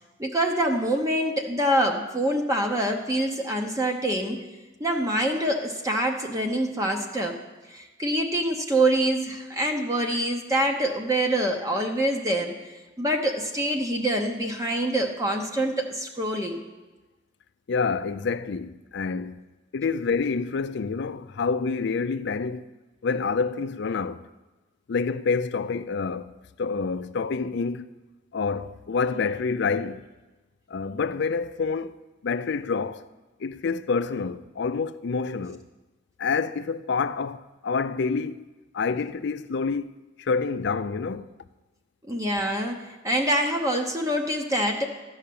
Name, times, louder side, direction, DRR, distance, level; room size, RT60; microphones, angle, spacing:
voice 1, 0.2-4.5 4.8-7.4 7.7-16.6 42.1-44.8, right 1 dB, 15° right, 0.8 m, -25 dB
voice 2, 17.7-19.4 19.7-22.7 23.0-24.3 24.9-26.3 26.6-27.9 28.3-30.1 30.7-32.0 32.2-33.0 33.4-35.6 36.2-38.5 38.7-39.9 40.2-41.3, left 5 dB, 60° left, 0.4 m, -27 dB
13.0 x 5.6 x 8.5 m
head